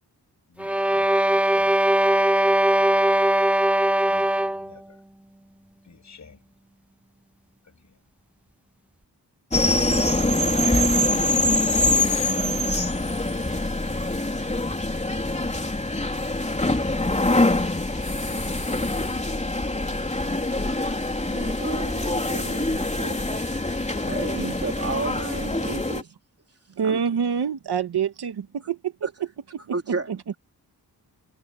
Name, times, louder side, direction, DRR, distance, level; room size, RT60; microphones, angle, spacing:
voice 1, 0.5-1.8 4.0-5.0 5.8-6.4 7.6-8.0 13.1-13.5, left 5 dB, 45° left, 7.4 m, -52 dB
sound 1, 0.6-4.7, right 1 dB, 5° right, 0.5 m, -20 dB
sound 2, 9.5-26.0, left 2 dB, 20° left, 3.5 m, -24 dB
voice 2, 21.2-23.4 24.0-26.1 26.8-27.0 29.7-30.1, right 3 dB, 40° right, 3.4 m, -33 dB
voice 3, 26.8-29.1 29.5-29.8 30.1-30.2, right 7 dB, 85° right, 1.7 m, -27 dB
wide cardioid pair, 105°, 38 cm